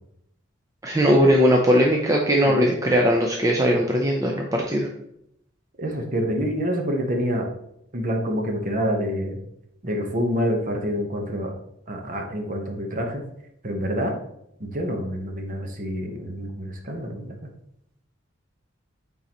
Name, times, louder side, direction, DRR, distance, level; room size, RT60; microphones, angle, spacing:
voice 1, 0.8-4.9, equal, 15° right, 0 dB, 0.5 m, -19 dB
voice 2, 2.3-2.9 5.8-7.5 7.9-9.4 9.8-11.5 11.9-13.2 13.6-14.1 14.6-17.3, equal, 40° right, 2 dB, 1.0 m, -27 dB
9.0 x 4.0 x 3.0 m, 0.77 s
head